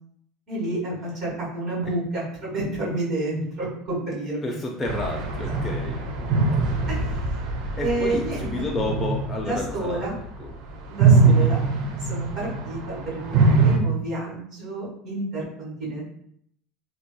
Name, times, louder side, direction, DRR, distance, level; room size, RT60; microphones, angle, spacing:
voice 1, 0.5-4.5 6.9-7.2 7.8-8.6 9.4-10.1 10.9-11.6 12.0-16.0, right 2 dB, 55° right, -5 dB, 1.4 m, -30 dB
voice 2, 4.4-6.4 6.7-6.8 7.8-10.0 10.4-10.5 11.2-11.6, left 2 dB, 20° left, 0 dB, 0.4 m, -31 dB
sound 1, 4.8-10.5 10.8-13.8, right 4 dB, 70° right, 0.5 m, -22 dB
2.6 x 2.3 x 2.2 m, 0.67 s
supercardioid pair, 110°, 0 cm